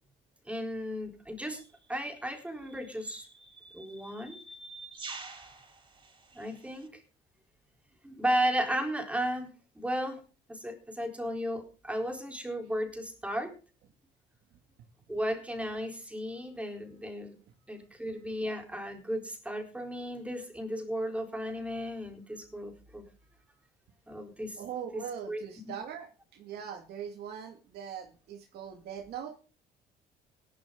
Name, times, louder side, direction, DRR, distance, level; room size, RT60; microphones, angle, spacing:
voice 1, 0.5-1.6 1.9-3.3 3.7-4.4 6.3-7.0 8.0-9.5 9.8-10.2 10.5-13.5 15.1-17.3 17.7-23.1 24.1-24.6 25.3-25.4, equal, 5° right, 3 dB, 4.1 m, -34 dB
sound 1, 1.5-1.7 2.7-6.9, right 3 dB, 30° right, 6.9 m, -47 dB
voice 2, 24.6-29.4, right 8 dB, 75° right, 3 dB, 2.4 m, -41 dB
17.5 x 12.0 x 3.9 m, 0.36 s
cardioid pair, 110°, 17 cm